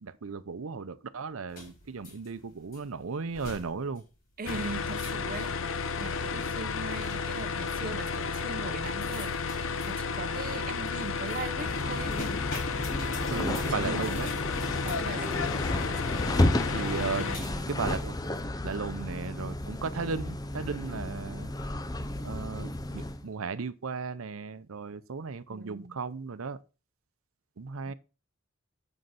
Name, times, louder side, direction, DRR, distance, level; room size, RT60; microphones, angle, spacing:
voice 1, 0.0-4.0 13.3-14.3 16.7-17.3 17.7-18.2 18.6-21.5 22.2-26.6 27.6-27.9, right 4 dB, 90° right, 0.6 m, -35 dB
sound 1, 1.5-18.8, left 2 dB, 45° left, 3.9 m, -48 dB
voice 2, 4.4-5.5 6.0-12.2 13.2-14.3 14.8-15.6 17.1-17.7 25.5-26.0, right 3 dB, 40° right, 0.7 m, -40 dB
sound 2, 4.5-17.4, left 5 dB, 75° left, 0.7 m, -32 dB
sound 3, 11.5-23.2, left 1 dB, 20° left, 0.6 m, -32 dB
7.9 x 6.5 x 5.6 m
head